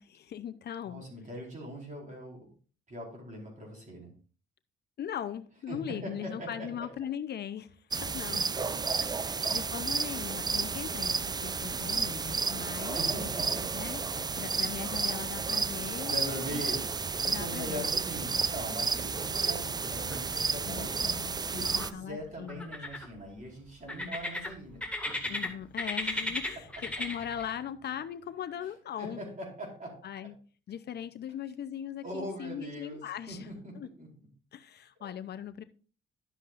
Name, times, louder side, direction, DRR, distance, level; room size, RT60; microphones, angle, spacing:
voice 1, 0.0-1.1 5.0-7.8 8.0-8.5 9.2-13.0 13.7-14.0 14.4-16.6 17.2-17.8 20.7-22.7 25.3-29.2 30.0-30.3 30.7-33.5 33.8-33.9 34.5-35.6, left 9 dB, 55° left, 11 dB, 0.6 m, -39 dB
voice 2, 0.9-2.5 2.9-4.1 5.7-6.9 8.5-8.8 12.8-14.4 15.8-16.9 17.2-21.0 21.5-25.3 29.0-30.3 32.0-34.3 35.0-35.1, equal, 40° right, -1 dB, 4.4 m, -41 dB
sound 1, 7.9-21.9, right 5 dB, 20° right, 0.4 m, -32 dB
sound 2, 20.1-20.7 20.9-21.9 22.5-23.3 23.9-25.5 25.8-27.5, left 2 dB, 5° left, 1.9 m, -35 dB
11.5 x 7.6 x 2.5 m, 0.40 s
cardioid pair, 90°, 20 cm